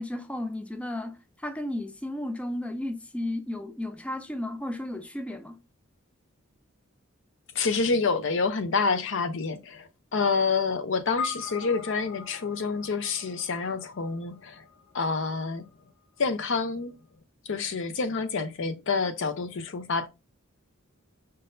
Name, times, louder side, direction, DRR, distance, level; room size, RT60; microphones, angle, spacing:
voice 1, 0.0-5.6, left 1 dB, 5° left, 0.3 m, -34 dB
voice 2, 7.5-14.7 14.9-15.7 16.2-16.9 17.4-20.1, left 4 dB, 65° left, 0.6 m, -28 dB
sound 1, 11.2-15.7, left 6 dB, 90° left, 0.9 m, -40 dB
5.2 x 3.8 x 2.6 m
head